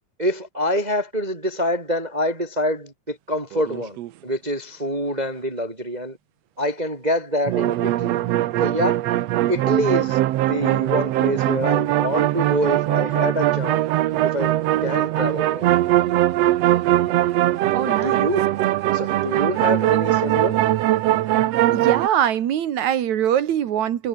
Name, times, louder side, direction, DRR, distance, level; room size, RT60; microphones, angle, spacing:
voice 1, 0.2-4.0 4.2-6.2 6.6-8.2 8.6-9.0 9.5-13.8 14.2-15.7 17.9-18.5 18.9-20.6, equal, 15° right, 2.3 m, -26 dB
sound 1, 3.5-4.1 7.5-22.1, right 14 dB, 75° right, 1.5 m, -21 dB
voice 2, 17.7-18.3 21.7-24.1, right 10 dB, 60° right, 2.7 m, -23 dB
omnidirectional pair, 3.9 m